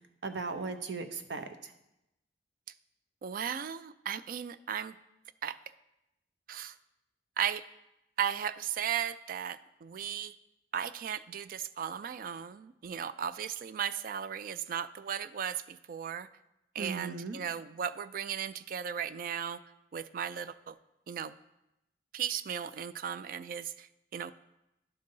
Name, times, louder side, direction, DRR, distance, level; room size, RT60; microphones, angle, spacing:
voice 1, 0.2-1.7 16.8-17.4, right 4 dB, 80° right, 8 dB, 0.7 m, -37 dB
voice 2, 3.2-5.0 5.4-5.6 6.5-6.8 7.4-7.6 8.2-10.3 10.7-16.3 16.7-19.6 19.9-20.8 21.1-21.3 22.1-24.3, right 8 dB, 50° right, 15 dB, 0.3 m, -36 dB
11.5 x 3.9 x 5.4 m, 0.89 s
head